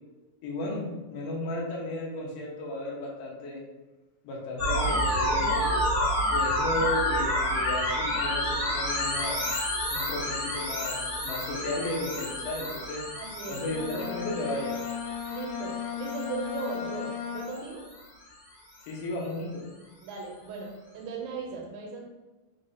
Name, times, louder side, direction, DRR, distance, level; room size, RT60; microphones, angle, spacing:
voice 1, 0.4-3.6 4.2-5.9 6.3-9.4 9.9-13.0 13.5-14.8 18.9-19.6, left 1 dB, 70° left, -2 dB, 2.3 m, -34 dB
sound 1, 4.6-18.1, left 1 dB, 45° left, 1.6 m, -30 dB
voice 2, 13.2-13.6 15.3-17.9 20.0-22.0, right 4 dB, 80° right, 0 dB, 2.3 m, -37 dB
Bowed string instrument, 13.6-17.9, left 8 dB, 85° left, 2.6 m, -36 dB
5.5 x 3.6 x 2.7 m, 1.1 s
omnidirectional pair, 4.3 m